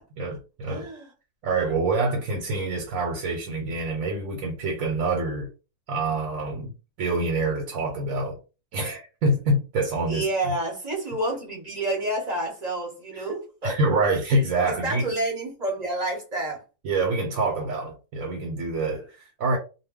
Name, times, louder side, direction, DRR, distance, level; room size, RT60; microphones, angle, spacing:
voice 1, 0.2-0.9 1.4-5.5 5.9-6.7 7.0-8.4 8.7-10.3 13.1-13.3 13.6-15.0 16.8-19.6, right 2 dB, 80° right, 1.1 m, -26 dB
voice 2, 0.7-1.1 10.1-13.8 14.6-16.6, right 2 dB, 35° right, 0.8 m, -29 dB
2.2 x 2.2 x 3.5 m
omnidirectional pair, 1.4 m